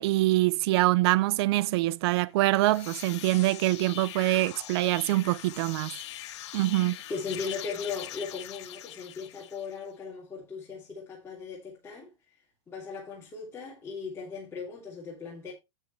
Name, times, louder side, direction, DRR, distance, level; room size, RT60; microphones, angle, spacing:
voice 1, 0.0-5.9 6.5-7.0, right 18 dB, 55° right, 0.5 m, -24 dB
sound 1, 2.4-9.8, left 13 dB, 65° left, 1.1 m, -42 dB
voice 2, 7.1-12.1 12.7-15.5, left 5 dB, 15° left, 3.0 m, -38 dB
9.4 x 8.4 x 3.2 m
hypercardioid pair, 130°, 16 cm